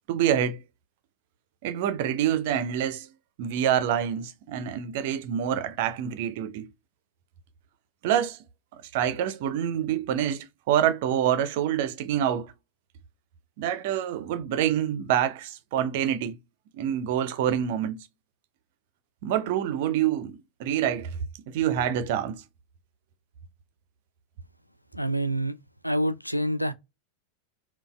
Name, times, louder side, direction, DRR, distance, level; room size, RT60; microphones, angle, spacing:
voice 1, 0.1-0.6 1.6-3.1 3.4-6.7 8.0-8.4 8.7-12.5 13.6-16.4 16.7-18.0 19.2-21.2 21.5-22.4, right 10 dB, 50° right, 0.4 m, -26 dB
voice 2, 24.9-25.6 25.8-26.7, right 1 dB, 90° left, 0.3 m, -27 dB
3.9 x 2.2 x 2.2 m
figure-of-eight pair, 90°, 0 cm